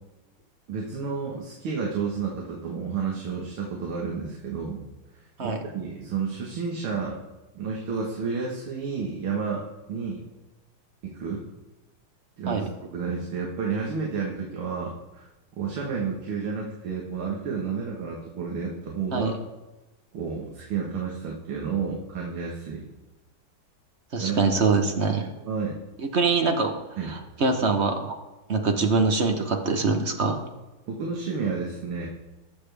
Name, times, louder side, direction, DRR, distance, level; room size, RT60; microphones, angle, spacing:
voice 1, 0.7-4.9 5.4-7.2 7.6-10.2 11.0-11.4 12.4-15.3 15.6-19.3 20.1-22.8 24.2-24.4 25.4-25.8 27.0-27.2 30.9-32.1, right 5 dB, 80° right, -1 dB, 2.3 m, -31 dB
voice 2, 24.1-25.3 26.1-26.7 27.0-28.2 28.5-30.4, right 4 dB, 45° right, 5 dB, 0.9 m, -24 dB
20.0 x 7.0 x 3.4 m, 1.1 s
omnidirectional pair, 2.3 m